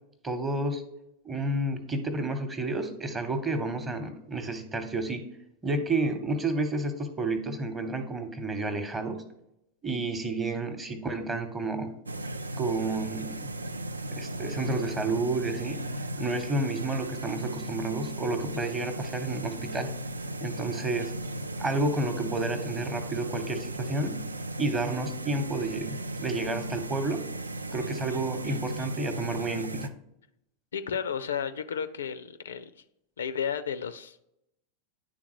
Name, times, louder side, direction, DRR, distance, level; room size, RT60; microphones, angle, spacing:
voice 1, 0.2-0.8 1.2-5.2 5.6-9.2 9.8-11.9 12.6-13.5 14.1-19.9 20.4-21.1 21.6-24.2 24.6-27.2 27.7-29.9, right 2 dB, 20° right, 7 dB, 0.9 m, -30 dB
sound 1, 12.1-29.9, right 1 dB, 80° right, 0.3 m, -36 dB
voice 2, 30.7-32.7 33.2-34.2, left 7 dB, 65° left, 12 dB, 0.4 m, -33 dB
10.0 x 3.6 x 3.0 m, 0.82 s
figure-of-eight pair, 90°, 0 cm